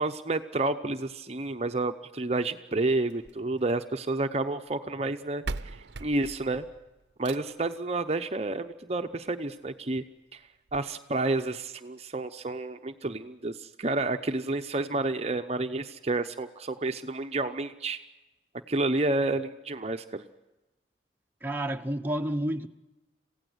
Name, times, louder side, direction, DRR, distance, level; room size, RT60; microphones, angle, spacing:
voice 1, 0.0-6.6 7.2-10.0 10.3-10.4 10.7-18.0 18.7-20.2, right 2 dB, 35° right, 0.8 m, -30 dB
sound 1, 3.1-4.3 5.1-5.2 5.4-7.7 9.1-9.2 9.7-9.8 10.0-10.1 10.7-10.8, right 3 dB, 80° right, 0.7 m, -40 dB
voice 2, 21.4-22.7, right 1 dB, 10° right, 1.0 m, -30 dB
27.0 x 16.5 x 8.0 m
head